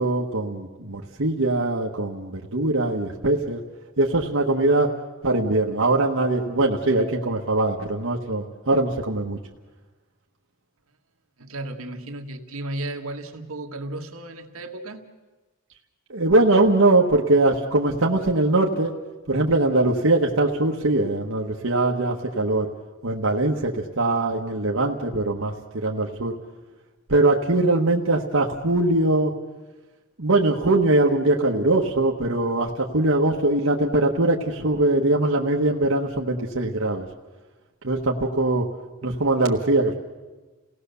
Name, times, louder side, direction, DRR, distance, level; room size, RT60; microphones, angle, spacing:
voice 1, 0.0-3.6 4.0-4.9 5.2-9.4 16.1-18.9 19.3-22.7 23.0-26.3 27.1-29.3 30.2-37.1 37.8-38.7 39.0-39.9, right 2 dB, 70° right, -1 dB, 1.3 m, -21 dB
voice 2, 11.4-15.0, right 1 dB, 90° right, 3 dB, 1.7 m, -34 dB
29.0 x 17.5 x 6.9 m, 1.2 s
head